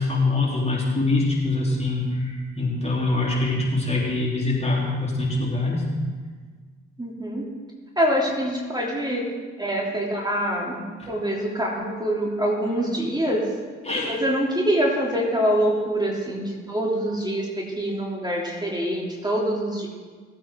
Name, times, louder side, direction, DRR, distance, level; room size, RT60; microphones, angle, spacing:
voice 1, 0.0-5.8 11.0-11.1 13.8-14.1, left 2 dB, 20° left, -4 dB, 3.4 m, -24 dB
voice 2, 7.0-7.5 8.0-9.3 9.6-13.4 14.0-19.9, equal, 10° right, -3 dB, 3.0 m, -25 dB
17.5 x 8.5 x 3.8 m, 1.5 s
hypercardioid pair, 40°, 33 cm